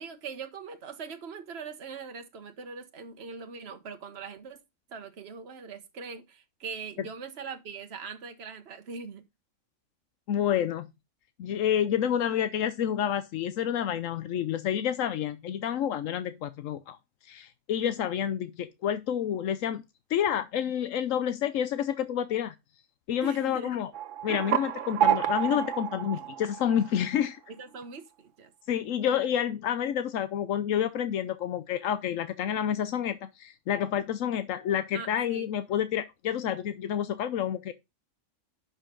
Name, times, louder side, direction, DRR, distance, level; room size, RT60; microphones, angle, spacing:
voice 1, 0.0-4.6 4.9-9.2 23.2-23.8 26.1-26.3 27.5-28.5 34.9-35.5, right 5 dB, 55° right, 1.4 m, -41 dB
voice 2, 10.3-10.9 11.4-17.0 17.2-19.8 20.1-22.5 23.1-23.9 24.2-27.4 28.7-37.7, left 9 dB, 85° left, 1.1 m, -29 dB
sound 1, 23.9-27.3, right 11 dB, 70° right, 1.1 m, -29 dB
11.0 x 5.5 x 3.8 m
omnidirectional pair, 1.3 m